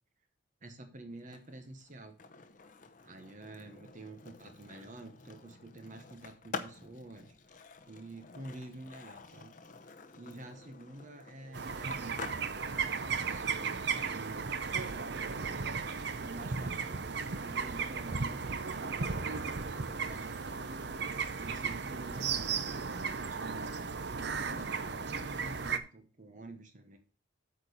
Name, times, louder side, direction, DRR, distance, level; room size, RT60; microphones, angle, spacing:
voice 1, 0.6-2.2 3.0-7.5 7.9-9.5 10.1-12.2 12.6-13.0 13.2-15.6 16.2-18.6 19.1-20.9 21.4-22.8 23.1-27.0, right 2 dB, 40° right, 7 dB, 1.1 m, -49 dB
Skateboard, 1.2-17.1, left 4 dB, 40° left, 0.8 m, -50 dB
sound 1, 11.5-25.8, right 5 dB, 60° right, 0.7 m, -35 dB
8.6 x 4.5 x 6.7 m, 0.36 s
head